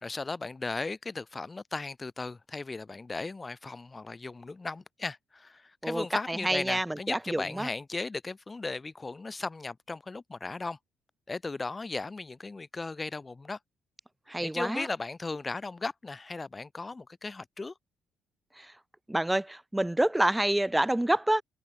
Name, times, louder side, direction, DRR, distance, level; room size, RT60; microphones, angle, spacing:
voice 1, 0.0-10.8 11.3-13.6 14.4-17.7, left 3 dB, 25° left, 3.0 m, -36 dB
voice 2, 5.8-7.7 14.3-14.9 18.6-18.7 19.1-21.4, right 1 dB, 10° right, 4.8 m, -28 dB
cardioid pair, 90°, 0 cm